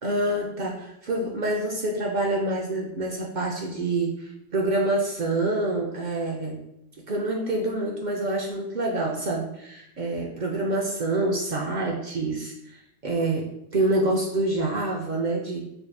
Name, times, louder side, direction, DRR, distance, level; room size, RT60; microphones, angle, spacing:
voice 1, 0.0-6.6 7.1-12.8 13.0-13.5 13.7-15.6, right 2 dB, 65° right, -1 dB, 0.4 m, -26 dB
4.4 x 2.6 x 2.2 m, 0.81 s
omnidirectional pair, 1.3 m